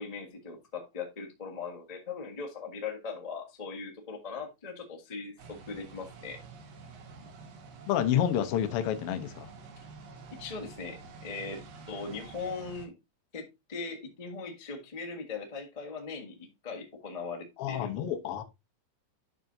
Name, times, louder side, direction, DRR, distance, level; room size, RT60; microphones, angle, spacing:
voice 1, 0.0-6.4 10.3-12.9 13.3-18.0, left 4 dB, 60° left, 0.4 m, -40 dB
sound 1, 5.4-12.9, right 4 dB, 80° right, 3.0 m, -49 dB
voice 2, 7.9-9.5 17.6-18.4, left 10 dB, 80° left, 1.3 m, -29 dB
10.5 x 5.9 x 2.7 m
omnidirectional pair, 4.0 m